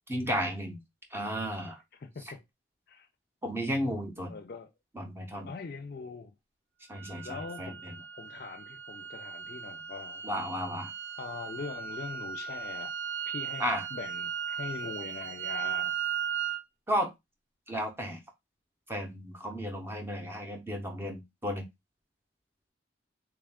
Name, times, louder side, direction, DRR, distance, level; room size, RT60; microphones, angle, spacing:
voice 1, 0.1-0.8 1.1-1.8 3.4-4.4 4.9-5.5 6.9-8.0 10.2-10.9 13.6-13.9 16.9-17.1 17.7-18.2 18.9-21.7, equal, 10° right, 0.6 m, -33 dB
voice 2, 2.0-2.4 2.9-3.1 4.3-4.7 5.4-6.3 7.2-7.8 8.1-10.2 11.2-12.9 13.3-16.0, left 4 dB, 50° left, 0.4 m, -42 dB
sound 1, 6.9-16.6, right 8 dB, 70° right, 0.7 m, -37 dB
3.3 x 2.4 x 3.4 m
head